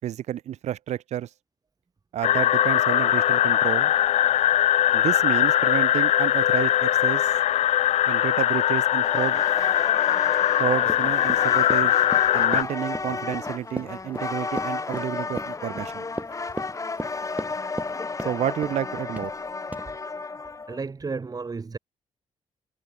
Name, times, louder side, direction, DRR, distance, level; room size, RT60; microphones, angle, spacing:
voice 1, 0.0-1.3 2.1-3.9 4.9-7.3 8.1-9.4 10.6-12.1 12.3-16.0 18.2-19.3, right 12 dB, 80° right, 6.6 m, -30 dB
sound 1, 2.2-12.6, left 12 dB, 80° left, 1.1 m, -21 dB
sound 2, 9.0-20.8, left 4 dB, 30° left, 3.4 m, -33 dB
Run, 10.8-17.9 18.2-18.8 19.2-19.4 19.7-19.8, right 2 dB, 15° right, 6.7 m, -36 dB
voice 2, 20.7-21.8, right 4 dB, 35° right, 5.9 m, -32 dB
cardioid pair, 85°, 11 cm